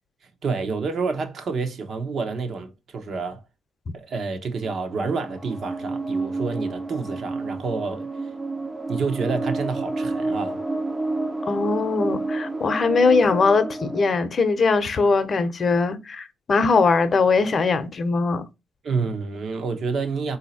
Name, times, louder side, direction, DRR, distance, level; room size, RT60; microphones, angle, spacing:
voice 1, 0.4-3.4 3.9-8.1 8.9-10.6 18.8-20.4, right 4 dB, 55° right, 0.9 m, -28 dB
sound 1, 4.6-14.1, right 2 dB, 15° right, 0.5 m, -30 dB
voice 2, 11.5-18.4, left 4 dB, 40° left, 0.8 m, -21 dB
4.1 x 2.7 x 4.1 m
cardioid pair, 90°, 0 cm